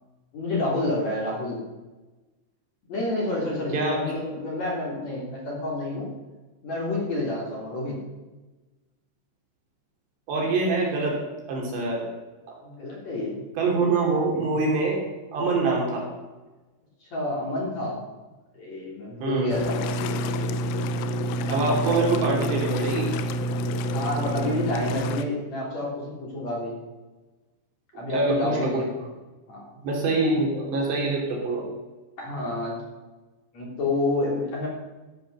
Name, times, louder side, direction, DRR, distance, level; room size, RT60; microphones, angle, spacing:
voice 1, 0.3-1.6 2.9-6.1 6.6-8.0 12.6-13.4 14.4-14.6 17.0-18.0 18.5-20.0 23.9-26.8 27.9-28.9 29.5-29.7 32.2-32.8 33.5-34.7, left 2 dB, 40° left, -3 dB, 4.2 m, -29 dB
voice 2, 3.7-4.1 10.3-11.2 11.5-12.1 13.6-15.0 15.3-16.1 19.2-19.5 21.5-23.1 28.1-28.8 29.8-31.7, right 3 dB, 65° right, -1 dB, 5.1 m, -24 dB
sound 1, 19.5-25.2, equal, 80° left, 3.2 m, -28 dB
15.0 x 9.9 x 6.8 m, 1.2 s
omnidirectional pair, 5.6 m